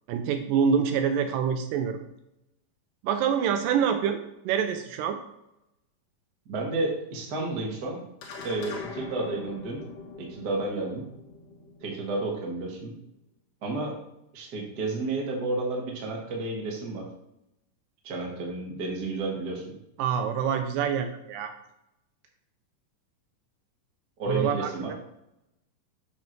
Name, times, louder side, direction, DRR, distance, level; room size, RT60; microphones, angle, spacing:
voice 1, 0.1-2.0 3.0-5.2 20.0-21.5 24.3-24.9, right 7 dB, 80° right, 7 dB, 2.1 m, -26 dB
voice 2, 6.4-8.0 8.4-9.8 10.2-11.0 11.8-12.9 13.6-14.0 14.3-17.1 18.0-19.7 24.2-24.9, right 2 dB, 50° right, -1 dB, 1.2 m, -31 dB
sound 1, 8.2-12.8, left 4 dB, 80° left, 1.4 m, -43 dB
7.1 x 5.2 x 4.5 m, 0.86 s
omnidirectional pair, 4.1 m